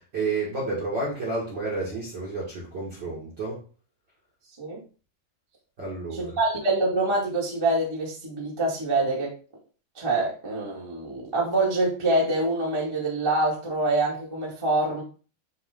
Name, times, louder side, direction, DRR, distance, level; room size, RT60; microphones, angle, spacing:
voice 1, 0.0-3.6 5.8-6.4, right 3 dB, 45° right, -5 dB, 1.4 m, -30 dB
voice 2, 6.1-9.3 9.9-15.0, right 2 dB, 20° right, -4 dB, 0.8 m, -25 dB
9.3 x 3.2 x 3.7 m, 0.36 s
omnidirectional pair, 4.6 m